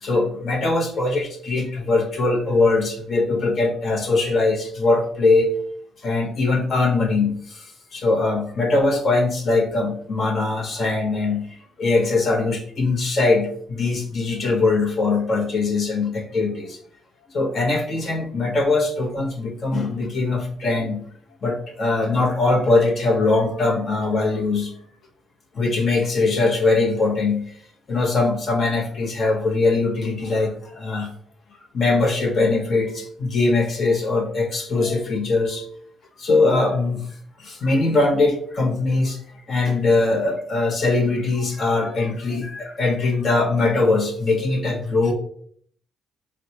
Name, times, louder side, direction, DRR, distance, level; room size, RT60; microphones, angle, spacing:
voice 1, 0.0-5.5 6.0-11.5 11.8-16.8 17.3-21.0 21.4-24.7 25.5-27.5 27.9-31.1 31.7-35.7 36.2-37.1 37.4-39.2 39.5-45.1, left 3 dB, 50° left, 0 dB, 0.8 m, -21 dB
4.1 x 2.1 x 2.8 m, 0.62 s
cardioid pair, 90°, 0 cm